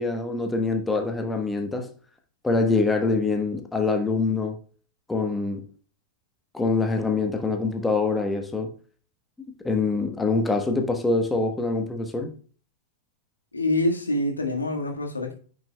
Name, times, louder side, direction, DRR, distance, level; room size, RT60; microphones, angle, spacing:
voice 1, 0.0-1.9 2.4-4.6 5.1-5.6 6.5-8.7 9.6-12.3, left 3 dB, 10° left, 1.2 m, -24 dB
voice 2, 13.5-15.3, left 1 dB, 80° left, 1.6 m, -25 dB
10.5 x 6.2 x 2.3 m
figure-of-eight pair, 90°, 0 cm